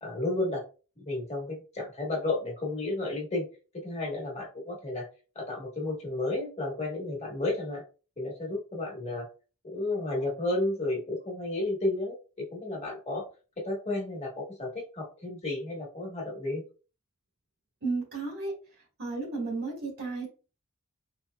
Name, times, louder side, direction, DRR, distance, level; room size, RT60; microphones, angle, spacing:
voice 1, 0.0-0.6 1.0-3.5 3.7-5.1 5.3-7.8 8.2-9.3 9.6-12.2 12.5-13.3 13.6-16.6, left 2 dB, 30° left, -2 dB, 1.3 m, -32 dB
voice 2, 17.8-18.5 19.0-20.3, right 3 dB, 60° right, -3 dB, 1.4 m, -33 dB
4.1 x 2.7 x 2.3 m, 0.35 s
head